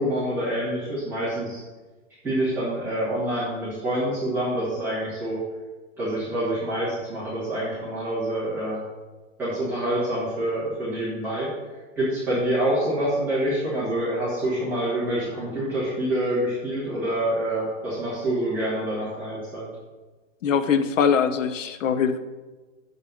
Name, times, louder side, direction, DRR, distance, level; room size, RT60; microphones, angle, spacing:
voice 1, 0.0-1.6 2.2-5.4 6.0-8.8 9.4-11.5 11.9-19.7, right 1 dB, 5° right, -12 dB, 1.6 m, -26 dB
voice 2, 20.4-22.2, left 7 dB, 85° left, 11 dB, 0.9 m, -22 dB
7.2 x 5.4 x 6.3 m, 1.3 s
supercardioid pair, 180°, 37 cm